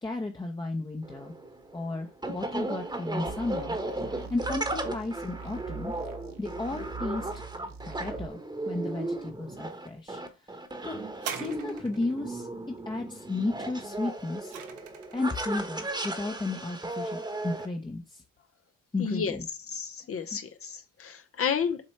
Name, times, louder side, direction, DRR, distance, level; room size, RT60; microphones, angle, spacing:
voice 1, 0.0-1.3 1.7-3.7 4.3-5.9 6.4-7.3 8.0-8.4 8.7-10.2 10.8-11.0 11.3-12.5 12.9-14.5 15.1-18.2 18.9-19.5, left 2 dB, 15° left, 0.8 m, -33 dB
sound 1, 1.0-17.7, right 2 dB, 15° right, 1.1 m, -36 dB
sound 2, 3.3-8.3, right 5 dB, 60° right, 1.4 m, -43 dB
sound 3, 11.1-12.2 13.9-15.3 16.1-16.2, right 8 dB, 85° right, 1.1 m, -40 dB
voice 2, 19.0-19.4 19.7-21.8, left 6 dB, 50° left, 0.8 m, -31 dB
7.5 x 3.1 x 4.4 m
cardioid pair, 90°, 30 cm